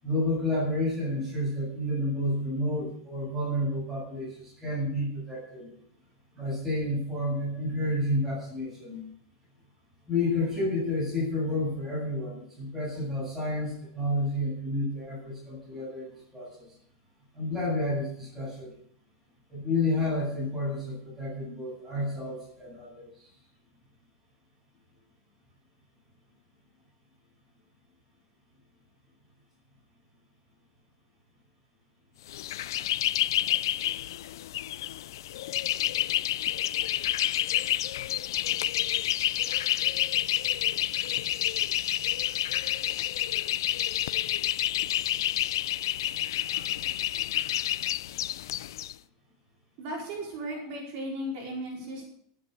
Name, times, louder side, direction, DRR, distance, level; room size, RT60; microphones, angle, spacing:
voice 1, 0.0-5.7 6.3-9.0 10.1-16.7 17.3-18.7 19.5-23.3 46.5-46.7, left 1 dB, 5° right, -7 dB, 7.5 m, -30 dB
sound 1, 32.3-48.9, left 13 dB, 85° left, 0.5 m, -29 dB
voice 2, 49.8-52.0, right 1 dB, 40° right, -2 dB, 5.0 m, -36 dB
16.5 x 8.8 x 6.6 m, 0.64 s
supercardioid pair, 175°, 2 cm